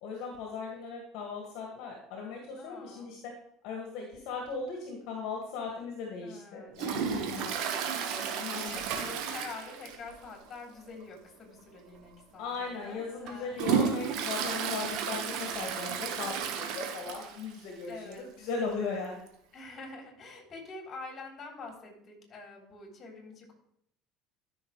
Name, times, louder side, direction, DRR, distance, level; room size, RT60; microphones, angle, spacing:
voice 1, 0.0-3.3 3.6-7.5 8.4-8.9 12.4-19.3, left 4 dB, 60° left, 0 dB, 2.1 m, -38 dB
voice 2, 2.6-3.1 6.2-13.6 17.9-18.3 19.5-23.5, left 3 dB, 40° left, 1 dB, 3.8 m, -46 dB
Toilet flush, 6.8-10.2 10.5-10.6 11.0-11.1 11.9-12.1 12.6-17.5 17.8-17.9 18.1-18.2 19.3-19.4, right 7 dB, 65° right, 1.4 m, -33 dB
13.5 x 6.4 x 3.3 m, 0.72 s
hypercardioid pair, 70°, 0 cm